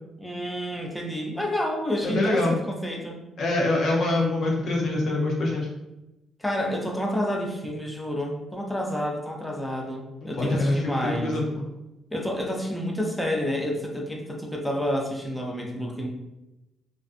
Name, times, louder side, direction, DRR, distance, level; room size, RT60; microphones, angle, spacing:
voice 1, 0.2-3.2 6.4-11.4 12.1-16.1, equal, 5° left, -1 dB, 0.5 m, -29 dB
voice 2, 2.0-2.5 3.4-5.7 10.2-11.6, left 2 dB, 65° left, -2 dB, 0.5 m, -24 dB
2.4 x 2.4 x 2.5 m, 0.97 s
cardioid pair, 90°, 0 cm